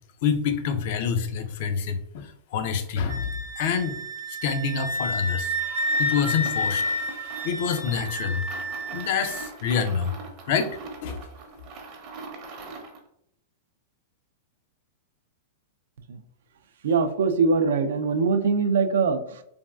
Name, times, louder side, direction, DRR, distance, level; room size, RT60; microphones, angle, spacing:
voice 1, 0.2-4.0 4.3-5.6 6.0-6.8 7.4-8.4 8.9-10.1 10.5-11.2, left 6 dB, 60° left, 8 dB, 0.4 m, -27 dB
Wind instrument woodwind instrument, 3.1-9.5, equal, 75° left, 1.3 m, -30 dB
sound 1, 5.7-13.1, right 3 dB, 45° right, 0.6 m, -42 dB
voice 2, 16.8-19.4, right 4 dB, 80° right, 9 dB, 0.3 m, -22 dB
3.3 x 2.3 x 2.2 m, 0.71 s
hypercardioid pair, 125°, 0 cm